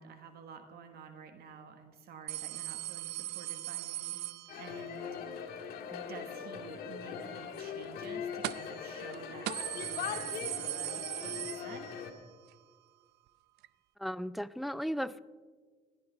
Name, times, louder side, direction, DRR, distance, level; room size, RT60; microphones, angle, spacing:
voice 1, 0.0-4.2 4.6-5.1 6.1-11.9, right 6 dB, 65° right, 7 dB, 1.5 m, -50 dB
sound 1, 2.3-5.0 8.4-8.8 9.1-9.2 9.5-12.2 12.5-12.6 13.6-13.7, right 15 dB, 85° right, 0.5 m, -39 dB
sound 2, 4.5-12.1, left 7 dB, 65° left, 1.8 m, -41 dB
voice 2, 14.0-15.2, equal, ahead, 15 dB, 0.3 m, -36 dB
17.0 x 12.0 x 4.0 m, 1.5 s
cardioid pair, 110°, 17 cm